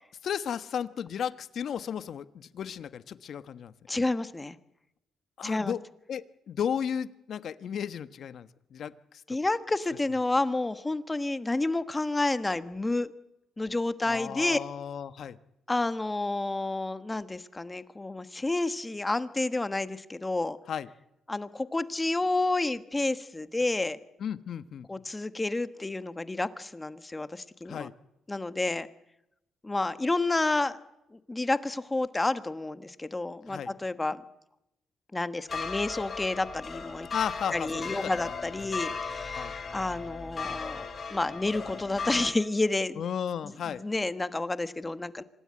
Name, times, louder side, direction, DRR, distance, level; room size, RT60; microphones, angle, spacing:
voice 1, 0.2-3.7 5.4-5.8 6.1-9.2 14.1-15.4 20.7-20.9 24.2-24.9 27.7-27.9 33.5-33.7 37.1-38.1 39.3-39.5 43.0-43.8, left 8 dB, 60° left, 12 dB, 1.2 m, -34 dB
voice 2, 3.9-4.6 5.4-5.7 9.3-13.1 13.6-14.6 15.7-20.6 21.3-24.0 24.9-27.9 28.3-28.9 29.6-30.8 31.1-34.2 35.1-37.1 37.5-40.8 41.1-43.0 43.4-45.2, left 2 dB, 15° left, 11 dB, 1.3 m, -30 dB
sound 1, 35.5-42.3, left 5 dB, 40° left, 5.3 m, -37 dB
26.0 x 17.5 x 9.9 m, 0.87 s
cardioid pair, 90°, 0 cm